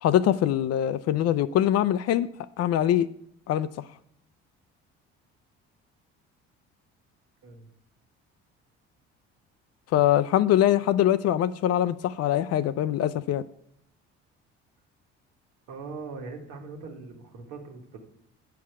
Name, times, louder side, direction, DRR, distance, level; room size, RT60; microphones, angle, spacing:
voice 1, 0.0-2.3 2.6-3.1 3.5-3.7 9.9-13.4, left 11 dB, 55° left, 0.5 m, -23 dB
voice 2, 15.7-18.0, right 4 dB, 80° right, 1.6 m, -41 dB
8.5 x 5.8 x 4.7 m
supercardioid pair, 70°, 30 cm